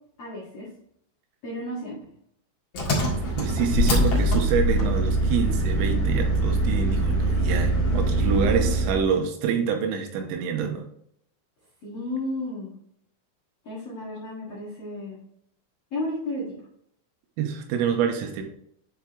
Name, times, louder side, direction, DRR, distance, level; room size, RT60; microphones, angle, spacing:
voice 1, 0.2-0.7 1.4-2.0 11.8-12.7 13.6-15.2 15.9-16.5, left 1 dB, 70° left, -7 dB, 1.4 m, -33 dB
Engine, 2.7-9.0, right 1 dB, 55° left, 1.6 m, -23 dB
voice 2, 3.4-10.9 17.4-18.4, right 7 dB, 90° right, 4 dB, 3.5 m, -26 dB
8.7 x 4.7 x 2.9 m, 0.69 s
omnidirectional pair, 5.9 m